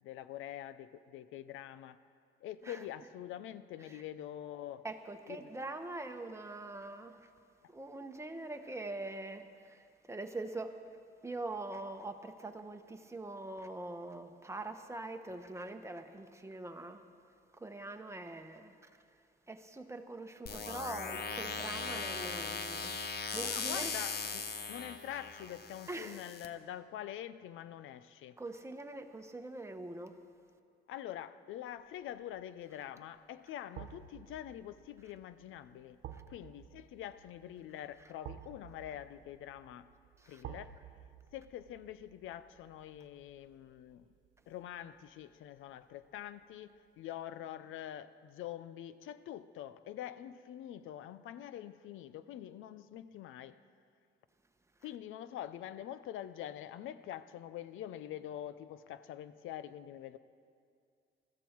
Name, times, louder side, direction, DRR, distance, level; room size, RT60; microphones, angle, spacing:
voice 1, 0.0-2.0 2.4-4.9 5.3-5.4 23.4-28.4 30.9-36.0 36.3-39.9 40.3-40.7 41.3-44.1 44.5-53.6 54.8-60.2, left 11 dB, 85° left, 14 dB, 0.6 m, -45 dB
voice 2, 4.8-7.3 7.7-10.8 11.2-17.1 17.5-18.9 19.5-23.0 23.3-23.9 25.9-26.2 28.4-30.2 36.1-36.2 40.2-40.4, right 2 dB, 15° right, 6 dB, 1.2 m, -43 dB
sound 1, 20.5-26.5, left 4 dB, 50° left, 1.2 m, -39 dB
sound 2, 32.0-32.3 33.7-44.7 45.1-45.2, right 9 dB, 75° right, 0.9 m, -53 dB
21.0 x 14.5 x 4.6 m, 2.3 s
cardioid pair, 90°, 20 cm